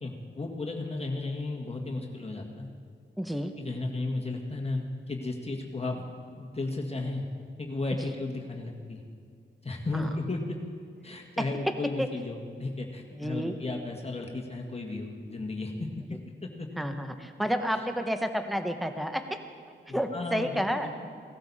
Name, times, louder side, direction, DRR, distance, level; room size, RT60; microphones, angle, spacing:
voice 1, 0.0-2.7 3.6-6.1 6.4-7.3 7.6-9.0 9.6-10.6 11.0-15.9 16.4-16.7 17.7-17.8 19.9-20.9, left 2 dB, 30° left, 1 dB, 1.7 m, -34 dB
voice 2, 3.2-3.5 8.0-8.1 9.9-10.1 12.0-12.1 13.2-13.5 16.8-19.2 19.9-20.9, equal, ahead, 7 dB, 1.0 m, -30 dB
17.5 x 13.0 x 4.2 m, 2.2 s
cardioid pair, 55°, 20 cm